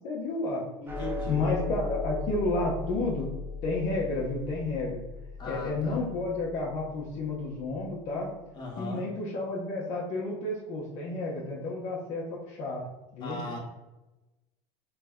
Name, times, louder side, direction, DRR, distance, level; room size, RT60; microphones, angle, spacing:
voice 1, 0.0-0.6 1.3-3.3 3.6-5.0 5.4-8.3 8.8-12.9 13.1-13.4, left 2 dB, 55° left, -3 dB, 0.7 m, -31 dB
voice 2, 0.8-1.4 5.4-6.0 8.5-9.0 13.2-13.6, left 2 dB, 30° left, -3 dB, 1.1 m, -38 dB
sound 1, 0.9-7.4, left 3 dB, 15° right, 0.6 m, -37 dB
3.2 x 2.1 x 3.5 m, 1.0 s
supercardioid pair, 125°, 14 cm